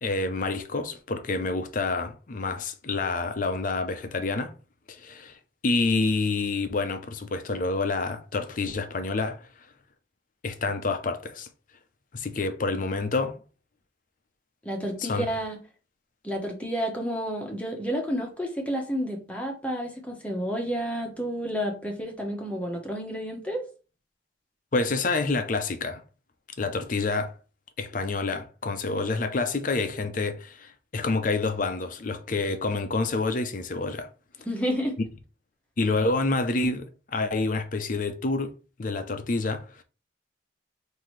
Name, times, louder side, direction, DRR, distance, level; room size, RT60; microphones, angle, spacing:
voice 1, 0.0-4.5 4.9-9.5 10.4-11.5 12.1-13.4 15.0-15.3 24.7-26.0 26.6-27.4 27.8-34.1 35.8-38.5 38.8-39.8, left 3 dB, 45° left, 0.5 m, -28 dB
voice 2, 14.6-15.6 16.2-23.7 34.5-35.0, equal, 5° left, 1.0 m, -30 dB
5.8 x 2.7 x 3.1 m
head